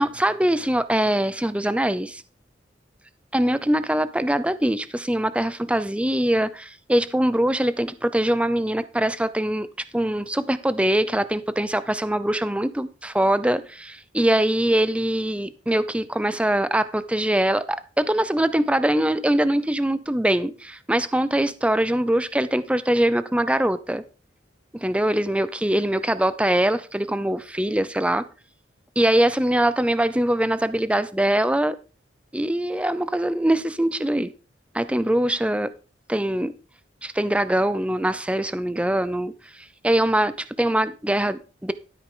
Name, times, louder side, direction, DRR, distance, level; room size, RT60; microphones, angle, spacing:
voice 1, 0.0-2.2 3.3-9.7 9.9-24.0 24.7-28.3 29.0-31.8 32.3-34.3 34.7-35.7 36.1-36.5 37.0-41.7, right 1 dB, 5° right, 0.5 m, -23 dB
13.0 x 8.4 x 3.8 m
head